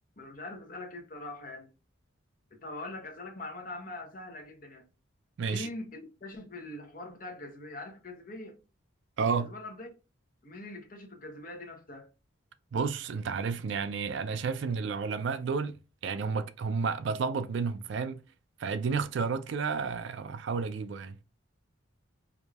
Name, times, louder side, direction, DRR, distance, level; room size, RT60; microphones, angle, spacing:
voice 1, 0.2-1.7 2.6-4.9 5.5-8.6 9.4-9.9 10.4-12.1, left 2 dB, 40° left, 0.9 m, -42 dB
voice 2, 9.2-9.5 12.7-15.8 16.0-18.2 18.6-21.2, right 5 dB, 60° right, 0.3 m, -31 dB
4.8 x 2.6 x 2.3 m
head